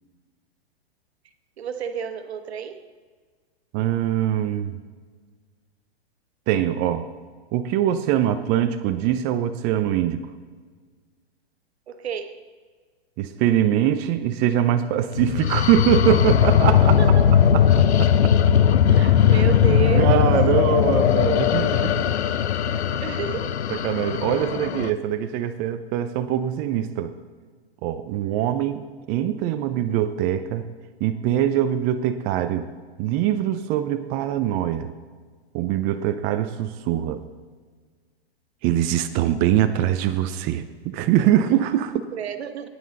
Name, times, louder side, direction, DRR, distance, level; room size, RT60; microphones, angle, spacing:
voice 1, 1.6-2.8 11.9-12.4 16.8-17.3 18.9-20.6 23.0-23.7 42.1-42.7, right 8 dB, 80° right, 8 dB, 1.4 m, -30 dB
voice 2, 3.7-4.8 6.5-7.1 7.5-10.3 13.2-17.0 17.3-18.4 19.2-19.5 20.0-22.2 22.7-22.9 23.7-27.1 27.8-30.7 31.0-32.7 33.0-34.9 35.5-37.2 38.6-42.1, right 11 dB, 30° right, 10 dB, 0.5 m, -23 dB
sound 1, 15.2-24.9, left 9 dB, 85° left, 0.7 m, -19 dB
18.5 x 9.5 x 4.0 m, 1.5 s
hypercardioid pair, 130°, 32 cm